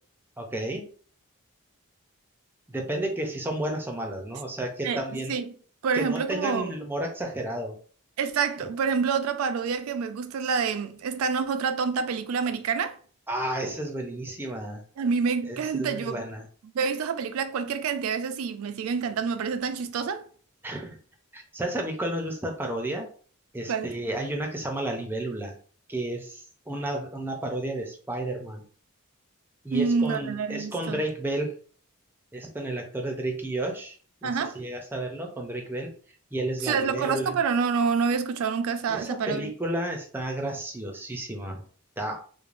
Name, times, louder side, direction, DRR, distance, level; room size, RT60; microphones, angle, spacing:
voice 1, 0.4-0.9 2.7-5.4 5.9-7.8 8.6-8.7 13.3-14.8 15.5-16.5 20.6-21.0 21.3-23.1 23.5-25.5 25.9-28.6 29.6-31.5 32.3-35.9 36.3-37.4 38.9-41.6 42.0-42.2, right 1 dB, 10° right, 0.5 m, -32 dB
voice 2, 4.8-5.5 5.8-6.7 8.2-13.0 15.0-16.2 16.7-20.2 23.7-23.9 29.7-31.0 34.2-34.6 36.6-39.5, right 5 dB, 75° right, 0.4 m, -27 dB
3.1 x 2.0 x 2.5 m
head